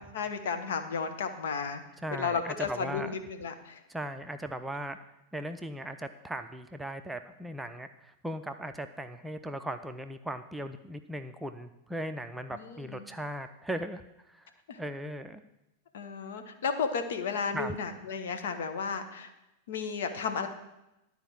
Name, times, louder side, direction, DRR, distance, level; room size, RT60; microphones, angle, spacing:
voice 1, 0.0-1.8 2.1-3.8 12.5-13.1 14.7-14.8 15.9-19.3 19.7-20.5, left 5 dB, 60° left, 7 dB, 1.2 m, -33 dB
voice 2, 2.0-3.2 3.9-5.0 5.3-14.0 14.3-14.5 14.8-15.4 17.5-17.8, right 1 dB, 5° right, 7 dB, 0.6 m, -38 dB
12.0 x 4.7 x 7.0 m, 0.92 s
figure-of-eight pair, 90°, 0 cm